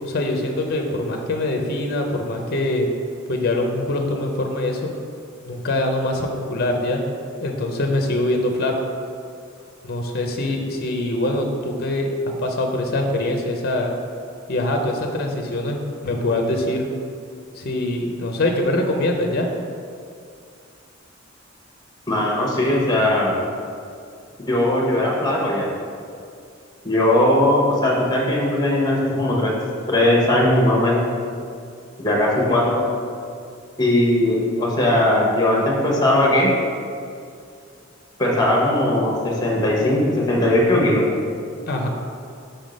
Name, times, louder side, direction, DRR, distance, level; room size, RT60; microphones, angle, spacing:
voice 1, 0.0-2.9 3.3-4.9 5.5-7.0 7.4-8.7 9.8-12.1 12.4-13.9 14.5-16.9 17.6-19.5 41.7-41.9, left 1 dB, 50° left, 3 dB, 0.6 m, -23 dB
voice 2, 22.1-23.3 24.4-25.7 26.8-29.5 29.9-31.0 32.0-32.8 33.8-36.5 38.2-41.0, left 1 dB, 20° left, -2 dB, 1.0 m, -19 dB
5.6 x 3.6 x 5.1 m, 2.4 s
head